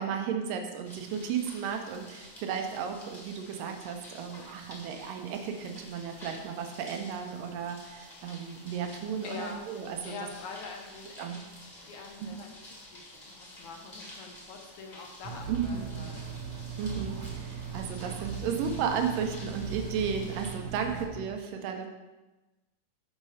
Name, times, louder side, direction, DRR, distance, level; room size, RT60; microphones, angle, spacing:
voice 1, 0.0-10.1 11.2-11.4 12.2-12.4 15.5-15.9 16.8-21.9, right 7 dB, 85° right, 4 dB, 2.5 m, -34 dB
sound 1, 0.8-20.5, left 1 dB, 30° left, 0.8 m, -51 dB
voice 2, 9.2-9.6 10.1-16.1, left 4 dB, 75° left, 2 dB, 2.0 m, -44 dB
sound 2, 15.2-21.0, right 6 dB, 65° right, 2.1 m, -38 dB
6.6 x 5.4 x 4.8 m, 1.1 s
omnidirectional pair, 3.8 m